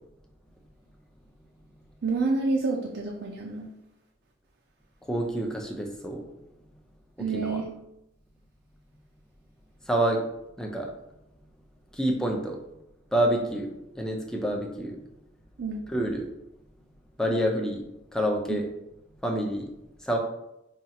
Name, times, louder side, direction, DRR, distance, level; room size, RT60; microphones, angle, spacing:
voice 1, 2.0-3.7 7.2-7.7 15.6-15.8 18.5-18.6, right 3 dB, 60° right, 0 dB, 0.4 m, -28 dB
voice 2, 5.1-6.3 7.3-7.6 9.8-10.2 10.6-10.9 11.9-12.6 13.1-15.0 15.9-16.3 17.2-17.8 18.1-18.7 19.2-19.7 20.0-20.2, right 1 dB, 5° left, 1 dB, 0.5 m, -27 dB
5.3 x 2.4 x 2.8 m, 0.84 s
head